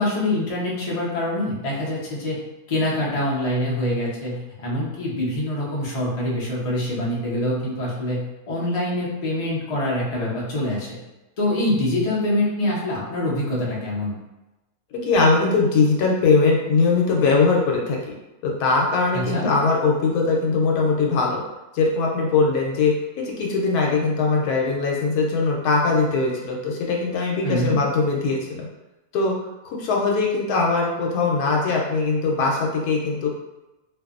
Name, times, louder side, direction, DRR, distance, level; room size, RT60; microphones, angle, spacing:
voice 1, 0.0-2.4 2.7-8.2 8.5-11.0 11.4-14.2 19.1-19.5 27.4-27.8, left 1 dB, 50° left, -5 dB, 0.4 m, -25 dB
voice 2, 15.0-18.0 18.4-21.4 21.7-28.7 29.1-29.3 29.6-33.3, left 4 dB, 75° left, -1 dB, 1.1 m, -21 dB
2.6 x 2.5 x 2.4 m, 1.0 s
omnidirectional pair, 1.7 m